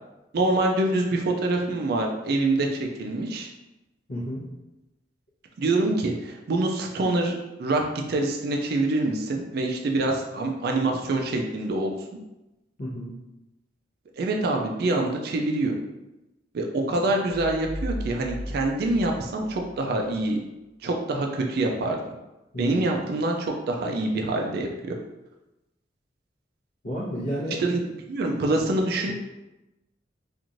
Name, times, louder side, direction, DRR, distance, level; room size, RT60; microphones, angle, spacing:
voice 1, 0.3-3.5 5.6-11.9 14.2-15.7 16.5-20.4 20.8-22.1 22.6-25.0 27.6-29.1, right 2 dB, 55° right, 1 dB, 0.3 m, -25 dB
voice 2, 4.1-4.4 12.8-13.1 16.9-17.0 22.5-22.8 26.8-27.6 29.1-29.2, equal, 60° left, -11 dB, 0.8 m, -31 dB
sound 1, 17.3-20.2, equal, 75° right, 0.7 m, -36 dB
3.0 x 2.5 x 2.5 m, 0.99 s
head